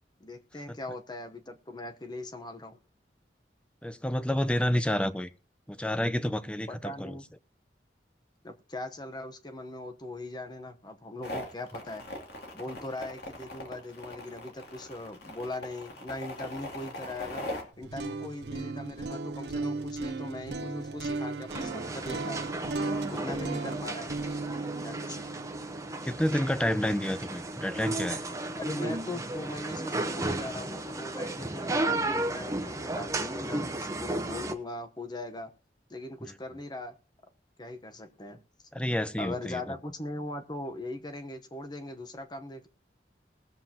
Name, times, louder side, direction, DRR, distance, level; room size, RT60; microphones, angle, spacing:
voice 1, 0.2-2.8 6.7-7.2 8.4-12.0 12.5-17.5 17.8-22.4 23.1-24.2 24.8-25.5 28.6-35.5 35.9-37.0 37.6-38.4 39.2-42.7, left 1 dB, 25° left, 7 dB, 0.9 m, -40 dB
voice 2, 3.8-5.3 5.7-7.2 23.1-23.3 26.0-28.2 38.7-39.7, left 1 dB, 5° left, 13 dB, 0.6 m, -29 dB
sound 1, 11.2-17.6, left 1 dB, 60° left, 2.6 m, -40 dB
sound 2, 17.7-27.8, right 3 dB, 70° right, 0.9 m, -36 dB
sound 3, 21.5-34.5, right 2 dB, 20° right, 0.9 m, -34 dB
20.5 x 7.6 x 2.9 m, 0.35 s
head